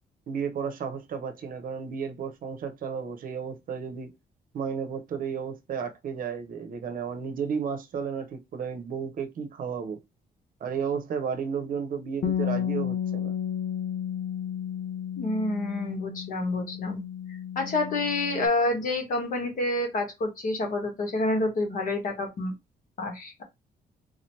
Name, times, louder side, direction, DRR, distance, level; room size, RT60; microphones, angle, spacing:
voice 1, 0.3-4.1 4.5-10.0 10.6-13.3, right 6 dB, 55° right, 0.7 m, -33 dB
Bass guitar, 12.2-18.5, left 9 dB, 80° left, 0.8 m, -32 dB
voice 2, 15.2-17.0 17.5-22.5 23.0-23.4, left 2 dB, 50° left, 1.4 m, -28 dB
3.8 x 2.8 x 3.1 m
cardioid pair, 175°, 17 cm